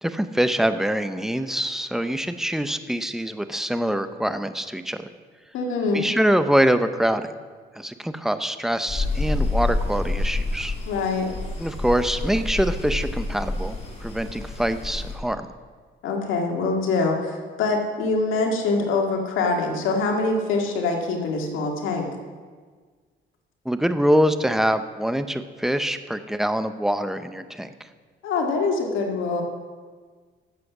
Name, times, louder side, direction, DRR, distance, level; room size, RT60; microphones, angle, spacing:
voice 1, 0.0-5.0 5.9-7.3 7.8-10.7 11.6-15.5 23.6-27.7, equal, ahead, 10 dB, 0.7 m, -24 dB
voice 2, 5.5-6.1 10.9-11.3 16.0-22.1 28.2-29.4, left 3 dB, 90° left, 2 dB, 2.0 m, -24 dB
sound 1, 8.9-15.1, left 2 dB, 30° left, 3.0 m, -28 dB
12.5 x 7.7 x 6.1 m, 1.5 s
cardioid pair, 90°, 20 cm